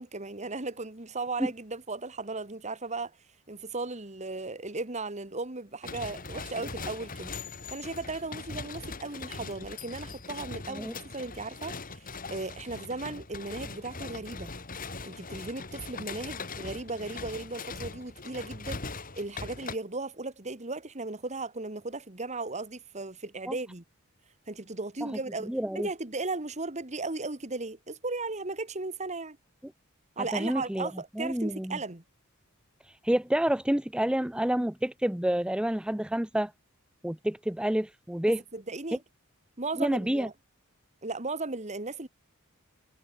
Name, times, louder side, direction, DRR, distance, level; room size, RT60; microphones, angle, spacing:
voice 1, 0.0-3.1 3.5-7.3 7.7-14.5 15.0-23.8 24.5-29.4 30.2-32.0 38.2-39.0 39.6-40.3 41.0-42.1, right 3 dB, 30° right, 2.0 m, -36 dB
sound 1, 5.8-19.8, left 4 dB, 40° left, 2.9 m, -41 dB
voice 2, 25.5-25.9 30.3-30.9 31.2-31.8 32.8-36.5 37.0-38.4 39.8-40.3, right 1 dB, 5° right, 0.5 m, -28 dB
head